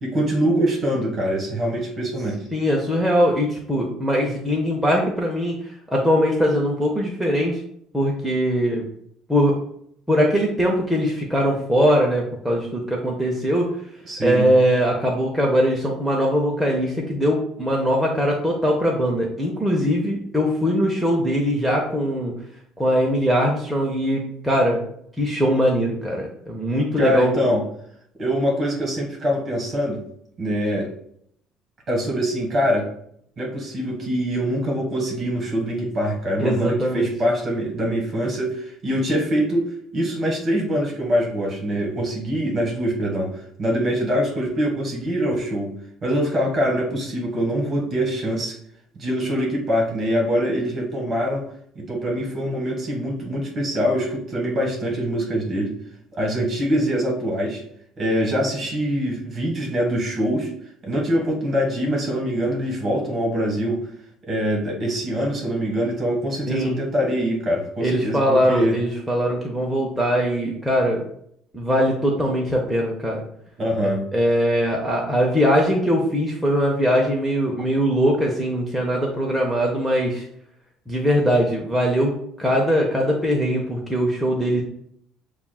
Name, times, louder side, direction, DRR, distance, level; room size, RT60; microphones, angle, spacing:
voice 1, 0.0-2.4 14.1-14.5 27.0-27.6 28.1-30.0 30.4-30.9 31.9-32.9 33.4-43.3 43.6-45.7 46.0-48.6 48.9-51.4 51.7-55.7 56.1-57.6 58.0-60.5 60.8-63.9 64.3-68.8 73.6-74.0, equal, 35° right, 0 dB, 1.6 m, -24 dB
voice 2, 2.5-7.6 7.9-8.8 9.3-9.6 10.1-13.7 14.2-22.3 22.8-24.8 25.2-27.4 36.4-37.1 66.5-66.7 67.8-71.0 71.5-73.2 73.8-80.3 80.9-84.6, equal, 5° right, -2 dB, 0.7 m, -21 dB
6.9 x 2.4 x 2.3 m, 0.69 s
cardioid pair, 120°, 0 cm